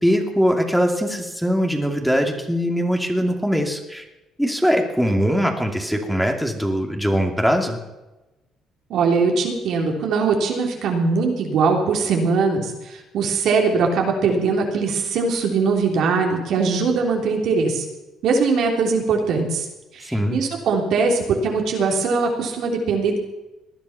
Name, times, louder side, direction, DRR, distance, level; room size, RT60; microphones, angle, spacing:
voice 1, 0.0-4.0 4.4-7.8 20.0-20.4, equal, ahead, 2 dB, 2.5 m, -21 dB
voice 2, 8.9-17.9 18.2-19.7 19.9-23.2, right 4 dB, 70° right, 1 dB, 3.4 m, -21 dB
19.0 x 10.5 x 5.9 m, 1.0 s
supercardioid pair, 80°, 0 cm